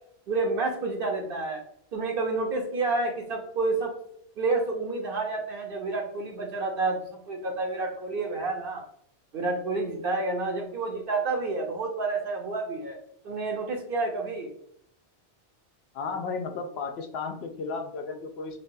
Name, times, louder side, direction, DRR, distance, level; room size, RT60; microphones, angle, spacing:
voice 1, 0.3-1.6 1.9-3.9 4.4-7.0 7.3-8.8 9.3-13.0 13.2-14.5, right 3 dB, 60° right, 2 dB, 0.8 m, -29 dB
voice 2, 15.9-18.6, left 4 dB, 75° left, 6 dB, 0.8 m, -34 dB
5.4 x 2.2 x 2.6 m, 0.69 s
omnidirectional pair, 1.1 m